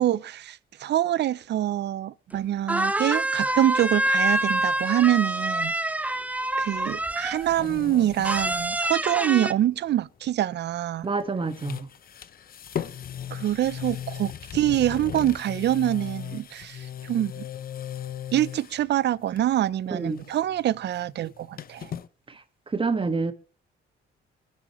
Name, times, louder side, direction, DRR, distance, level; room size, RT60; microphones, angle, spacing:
voice 1, 0.0-5.9 6.6-11.1 13.3-17.5 18.3-21.9, right 12 dB, 60° right, 0.5 m, -25 dB
sound 1, 2.3-2.4 2.7-7.5 8.2-9.5, right 1 dB, 5° right, 0.6 m, -26 dB
sound 2, 6.9-8.8 9.1-9.2 11.0-11.2 11.5-18.9 19.3-19.7 19.9-22.1, left 9 dB, 45° left, 0.7 m, -37 dB
voice 2, 11.0-11.9 19.9-20.2 22.7-23.3, right 4 dB, 25° right, 1.5 m, -27 dB
23.5 x 10.5 x 3.1 m
cardioid pair, 90°, 20 cm